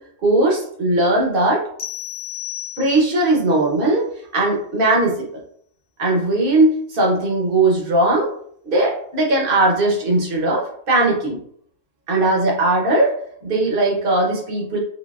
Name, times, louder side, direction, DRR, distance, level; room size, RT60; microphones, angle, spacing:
voice 1, 0.2-1.6 2.8-4.0 4.3-5.3 6.0-8.3 8.6-11.4 12.1-13.1 13.4-14.8, right 2 dB, 45° right, -1 dB, 1.0 m, -18 dB
sound 1, 1.8-3.3, left 12 dB, 90° left, 1.1 m, -32 dB
3.9 x 3.1 x 2.4 m, 0.63 s
omnidirectional pair, 1.4 m